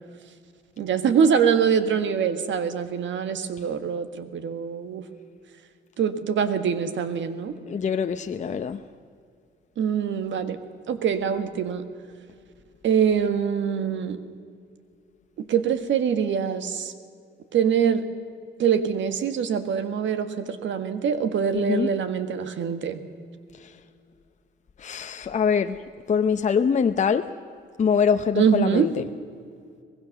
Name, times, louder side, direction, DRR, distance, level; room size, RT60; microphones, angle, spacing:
voice 1, 0.8-5.0 6.0-7.5 9.8-10.6 10.9-11.8 12.8-14.2 15.4-16.9 17.5-18.1 18.6-23.0 28.3-28.9, right 7 dB, 70° right, 10 dB, 1.7 m, -24 dB
voice 2, 7.7-8.8 21.5-21.9 24.8-25.8 26.1-27.3 27.8-29.1, left 6 dB, 35° left, 7 dB, 0.7 m, -23 dB
23.5 x 19.5 x 6.7 m, 2.3 s
cardioid pair, 90°, 20 cm